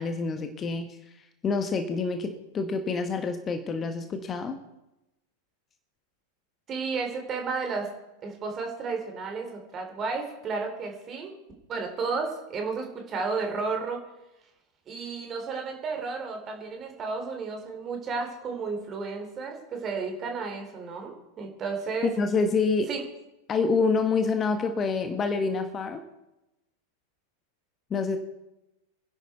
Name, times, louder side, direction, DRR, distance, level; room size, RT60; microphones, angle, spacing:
voice 1, 0.0-4.6 22.0-22.9 23.5-26.0 27.9-28.2, left 4 dB, 25° left, 7 dB, 1.3 m, -27 dB
voice 2, 6.7-7.9 8.2-11.4 11.7-14.0 14.9-22.1 22.9-23.0, right 4 dB, 25° right, 3 dB, 3.7 m, -32 dB
24.5 x 11.0 x 4.5 m, 0.93 s
figure-of-eight pair, 90°, 0 cm